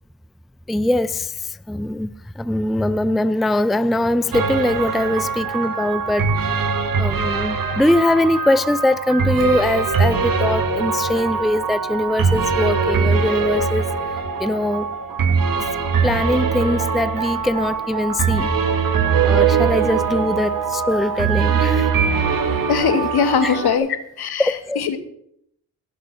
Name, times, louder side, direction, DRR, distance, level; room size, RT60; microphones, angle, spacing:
voice 1, 0.7-6.6 7.0-13.9 14.4-14.9 16.0-18.5 19.2-21.9 23.4-23.6 24.4-24.8, left 1 dB, ahead, 0.4 m, -22 dB
sound 1, 4.3-23.8, right 5 dB, 55° right, 1.6 m, -21 dB
voice 2, 22.7-23.9 24.2-25.0, left 7 dB, 70° left, 1.5 m, -20 dB
17.0 x 6.6 x 5.7 m
supercardioid pair, 55°, 40 cm